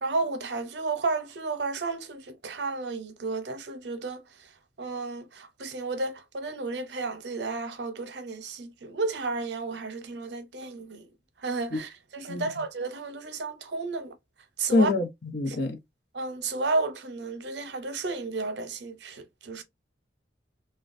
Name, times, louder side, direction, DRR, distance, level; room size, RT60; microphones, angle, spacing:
voice 1, 0.0-4.2 4.8-11.0 11.4-14.2 14.6-14.9 15.5-15.6 16.1-19.6, right 3 dB, 75° right, 0.7 m, -32 dB
voice 2, 14.7-15.8, left 2 dB, 75° left, 0.8 m, -25 dB
3.1 x 2.2 x 2.5 m
head